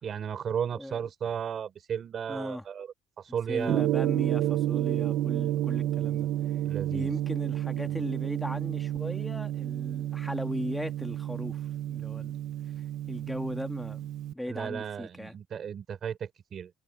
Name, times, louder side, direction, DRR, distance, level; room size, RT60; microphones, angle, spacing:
voice 1, 0.0-2.9 3.2-3.8 6.6-7.1 7.9-8.0 14.5-16.7, right 8 dB, 40° right, 3.9 m, -34 dB
voice 2, 2.3-2.6 3.5-6.3 6.9-12.4 13.1-14.1 14.3-15.4, left 1 dB, 5° left, 1.8 m, -37 dB
Gong, 3.7-14.3, right 13 dB, 65° right, 1.0 m, -30 dB
cardioid pair, 155°, 0 cm